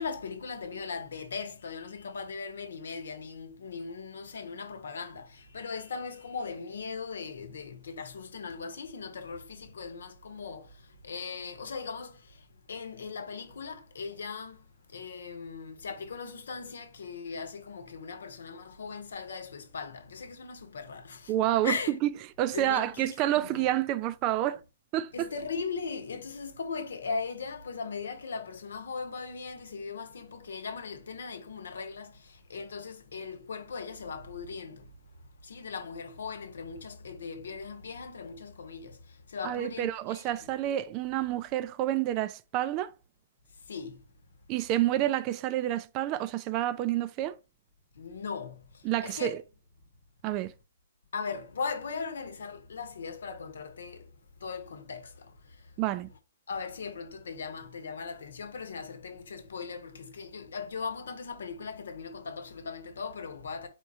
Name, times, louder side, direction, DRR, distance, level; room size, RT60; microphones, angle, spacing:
voice 1, 0.0-21.3 21.6-21.9 22.5-23.7 25.1-40.5 43.6-44.1 47.9-49.3 51.1-54.1 54.4-55.8 56.5-63.7, left 5 dB, 70° left, 0.9 m, -39 dB
voice 2, 21.3-21.8 22.0-22.1 22.4-24.6 24.9-25.3 39.4-42.9 44.5-47.4 48.8-49.4 50.2-50.5 55.8-56.1, right 13 dB, 35° right, 0.3 m, -29 dB
4.3 x 3.4 x 2.7 m
figure-of-eight pair, 125°, 0 cm